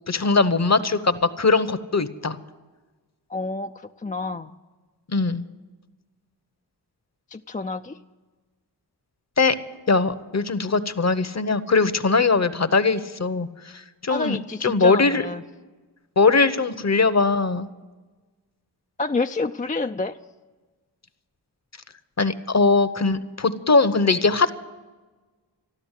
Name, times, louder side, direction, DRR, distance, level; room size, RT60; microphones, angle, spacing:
voice 1, 0.1-2.4 5.1-5.4 9.4-9.5 9.9-13.5 13.7-14.4 14.6-15.2 16.2-17.7 22.2-24.5, left 4 dB, 40° left, 12 dB, 0.9 m, -20 dB
voice 2, 3.3-4.5 7.3-8.0 14.1-15.4 19.0-20.2, left 3 dB, 20° left, 7 dB, 0.4 m, -28 dB
13.0 x 12.5 x 8.2 m, 1.3 s
cardioid pair, 45°, 41 cm